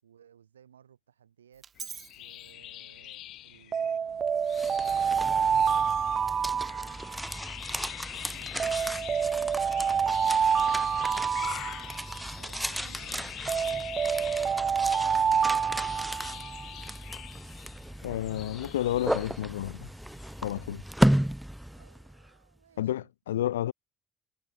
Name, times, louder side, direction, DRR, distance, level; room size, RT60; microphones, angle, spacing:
voice 1, 0.0-1.7 2.2-4.0 4.6-7.3 8.0-11.8 12.4-14.2 14.6-16.5 21.7-23.1, right 8 dB, 90° right, 7.2 m, -59 dB
Alarm, 1.6-2.0 3.7-7.5 8.6-12.4 13.5-16.7, right 7 dB, 45° right, 0.3 m, -27 dB
sound 1, 1.8-20.5, left 14 dB, 65° left, 0.9 m, -45 dB
sound 2, 4.3-22.3, right 1 dB, 5° right, 0.7 m, -34 dB
voice 2, 18.0-19.9 20.4-20.8 22.8-23.7, left 12 dB, 85° left, 0.8 m, -31 dB
hypercardioid pair, 50°, 0 cm